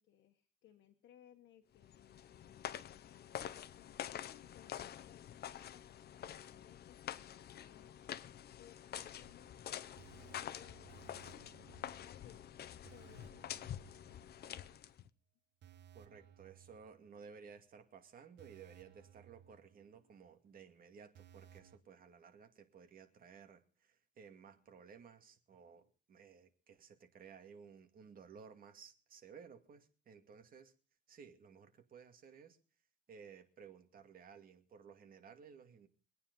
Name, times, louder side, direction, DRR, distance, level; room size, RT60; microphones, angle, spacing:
voice 1, 0.0-14.7, left 11 dB, 85° left, 5 dB, 1.4 m, -65 dB
sound 1, 1.8-15.1, left 10 dB, 55° left, 0.8 m, -47 dB
sound 2, 9.2-14.8 15.1-15.2 15.6-17.5 17.8-17.9 18.4-20.3 20.6-20.7 21.1-21.8, right 9 dB, 65° right, 1.5 m, -62 dB
voice 2, 15.9-30.7 31.1-32.6 33.1-35.9, right 6 dB, 50° right, 6 dB, 2.3 m, -57 dB
24.0 x 9.4 x 5.4 m, 0.38 s
cardioid pair, 150°, 19 cm